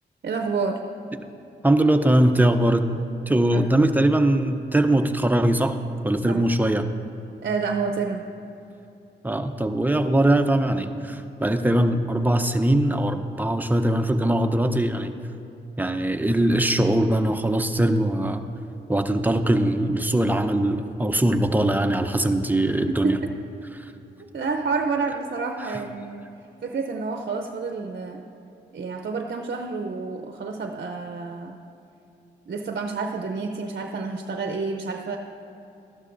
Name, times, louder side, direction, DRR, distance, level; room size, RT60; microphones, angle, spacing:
voice 1, 0.2-0.8 3.5-3.6 6.3-6.4 7.4-8.3 22.9-23.3 24.3-26.3 26.6-28.2 28.7-31.6 32.5-35.2, right 4 dB, 55° right, 4 dB, 0.6 m, -29 dB
voice 2, 1.6-2.9 3.3-5.8 6.0-6.9 9.2-15.1 15.8-18.4 18.9-23.2 23.7-23.8 25.7-25.8, right 1 dB, 10° right, 7 dB, 0.6 m, -21 dB
13.0 x 11.5 x 2.6 m, 2.7 s
cardioid pair, 55°, 19 cm